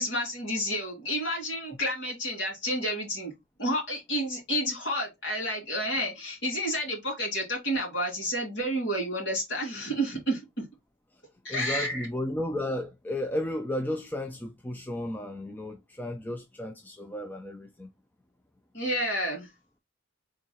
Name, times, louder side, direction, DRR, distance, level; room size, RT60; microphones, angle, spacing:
voice 1, 0.0-3.3 3.6-10.6 11.4-12.1 18.7-19.5, equal, 60° left, 2.3 m, -30 dB
voice 2, 11.5-17.9, left 1 dB, 10° left, 0.3 m, -33 dB
3.7 x 2.3 x 4.0 m
head